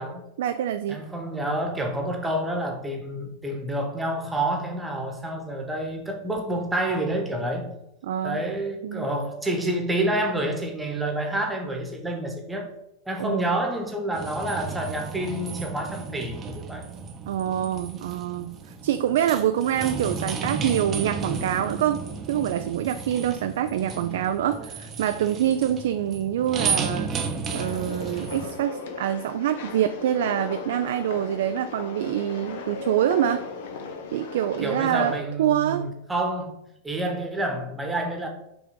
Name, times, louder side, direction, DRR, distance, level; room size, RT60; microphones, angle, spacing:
voice 1, 0.4-1.0 8.0-8.4 8.8-9.1 13.2-13.5 17.3-18.6 18.8-22.0 22.3-27.1 27.5-33.4 34.1-35.9, right 10 dB, 55° right, 0.3 m, -25 dB
voice 2, 0.9-7.7 8.2-12.7 13.0-16.9 24.4-24.7 34.6-36.5 36.8-38.3, right 1 dB, 10° right, 1.2 m, -28 dB
sound 1, 14.1-28.5, right 5 dB, 25° right, 0.8 m, -33 dB
sound 2, 27.5-35.2, left 5 dB, 55° left, 0.8 m, -36 dB
5.9 x 3.6 x 5.1 m
figure-of-eight pair, 90°, 0 cm